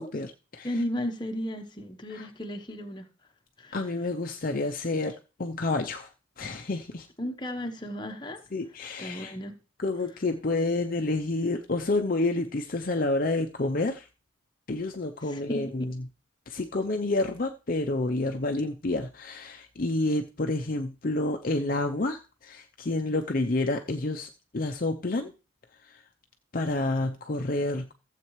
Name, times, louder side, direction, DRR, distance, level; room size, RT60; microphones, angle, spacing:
voice 1, 0.0-0.7 2.1-2.3 3.7-6.1 6.4-7.1 8.5-9.3 9.8-14.1 14.7-15.9 16.5-25.3 26.5-27.9, left 2 dB, 45° left, 0.6 m, -29 dB
voice 2, 0.6-3.1 3.6-3.8 7.2-8.4 9.0-9.6 15.3-15.9, left 1 dB, 20° left, 1.0 m, -34 dB
15.0 x 7.5 x 3.1 m
head